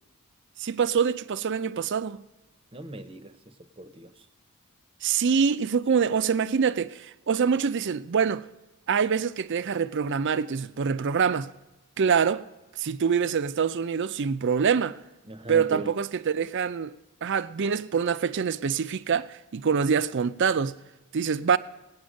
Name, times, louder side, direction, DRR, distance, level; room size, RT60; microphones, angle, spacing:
voice 1, 0.6-2.2 5.0-8.4 8.9-11.5 12.0-12.4 12.8-15.0 15.5-16.9 17.2-20.7 21.1-21.6, right 6 dB, 55° right, 0.5 m, -25 dB
voice 2, 2.7-4.2 15.3-15.9, right 2 dB, 25° right, 0.7 m, -39 dB
18.5 x 8.8 x 6.3 m
head